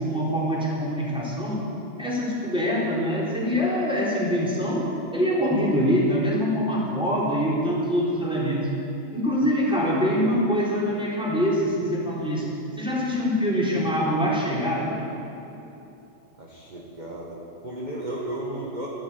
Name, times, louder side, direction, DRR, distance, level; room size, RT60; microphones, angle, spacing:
voice 1, 0.0-1.6 2.0-8.7 9.1-12.4 12.7-15.0, equal, ahead, -6 dB, 3.7 m, -24 dB
voice 2, 16.4-18.9, right 1 dB, 25° right, -4 dB, 1.7 m, -34 dB
13.5 x 12.0 x 8.4 m, 2.9 s
omnidirectional pair, 2.1 m